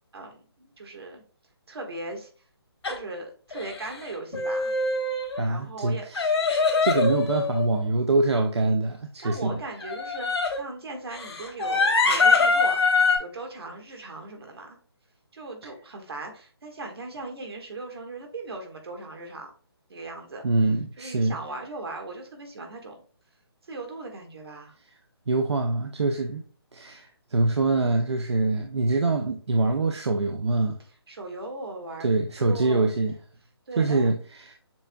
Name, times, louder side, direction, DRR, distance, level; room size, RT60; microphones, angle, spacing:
voice 1, 0.1-1.2 1.7-2.3 2.9-4.7 5.5-6.1 9.2-12.8 13.2-14.8 15.3-19.5 19.9-20.5 21.0-22.9 23.7-24.7 31.1-32.1 32.4-32.9 33.7-34.1, right 2 dB, 65° right, 1.5 m, -38 dB
sound 1, 2.8-3.0 3.5-4.0 4.3-5.4 6.2-7.9 9.8-10.6 11.1-13.2, left 4 dB, 75° left, 1.2 m, -23 dB
voice 2, 5.4-9.6 20.4-21.4 25.3-26.4 26.7-30.8 32.0-33.2 33.8-34.6, right 3 dB, 90° right, 0.6 m, -25 dB
7.0 x 2.7 x 2.2 m
hypercardioid pair, 160°, 14 cm